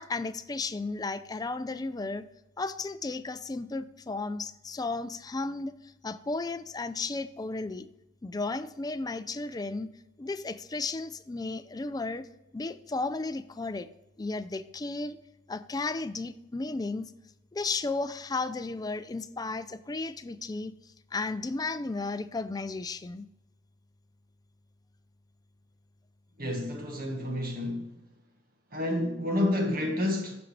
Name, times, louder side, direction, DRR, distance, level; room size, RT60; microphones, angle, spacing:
voice 1, 0.0-2.2 2.6-5.7 6.0-7.9 8.2-9.9 10.2-12.3 12.5-13.9 14.2-15.2 15.5-17.1 17.5-20.7 21.1-23.3, left 3 dB, 20° left, 0.4 m, -34 dB
voice 2, 26.4-28.0 28.7-30.4, left 1 dB, 50° right, 1.6 m, -29 dB
13.0 x 5.2 x 3.2 m
head